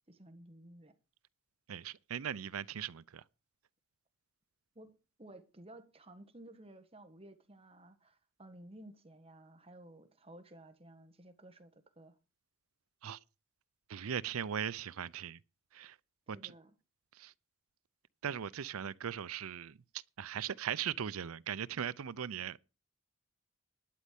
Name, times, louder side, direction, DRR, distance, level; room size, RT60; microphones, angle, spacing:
voice 1, 0.1-0.9 4.7-12.2 16.3-16.7, right 1 dB, 25° right, 1.5 m, -55 dB
voice 2, 1.7-3.2 13.0-13.2 13.9-15.4 15.7-16.0 16.3-16.5 17.2-17.3 18.2-22.6, right 8 dB, 90° right, 0.5 m, -39 dB
11.5 x 5.4 x 8.3 m
head